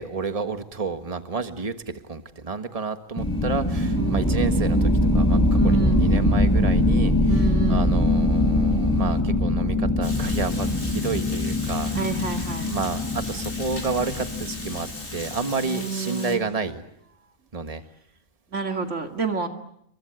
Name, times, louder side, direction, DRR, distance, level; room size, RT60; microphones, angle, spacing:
voice 1, 0.0-11.9 12.7-16.8 17.5-17.8, right 4 dB, 25° right, 8 dB, 1.6 m, -30 dB
sound 1, 3.2-9.2, left 3 dB, 80° left, 3.1 m, -37 dB
sound 2, 3.2-15.4, left 1 dB, 15° left, 4.4 m, -22 dB
voice 2, 4.0-4.3 5.5-6.1 7.3-7.9 11.9-12.7 15.6-16.4 18.5-19.5, right 4 dB, 60° right, 5 dB, 2.6 m, -30 dB
Water, 10.0-16.4, left 2 dB, 55° left, 4.9 m, -38 dB
29.0 x 23.0 x 8.0 m, 0.73 s
omnidirectional pair, 1.4 m